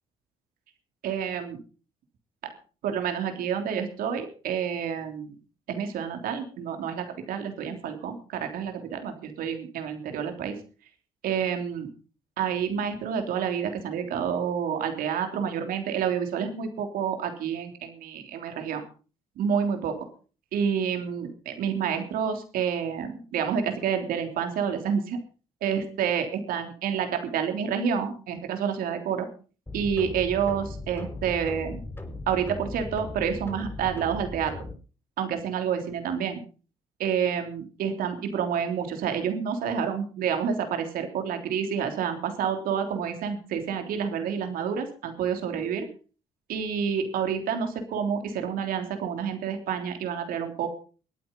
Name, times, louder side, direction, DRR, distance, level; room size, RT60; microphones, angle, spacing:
voice 1, 1.0-1.6 2.4-2.5 2.8-5.3 5.7-10.6 11.2-11.9 12.4-18.8 19.4-20.1 20.5-25.2 25.6-29.3 29.7-31.8 32.3-34.5 35.2-36.4 37.0-45.9 46.5-50.7, right 7 dB, 75° right, 6 dB, 3.3 m, -29 dB
sound 1, 29.7-34.7, left 2 dB, 15° left, 5.6 m, -38 dB
21.5 x 9.0 x 5.5 m, 0.38 s
hypercardioid pair, 55°, 15 cm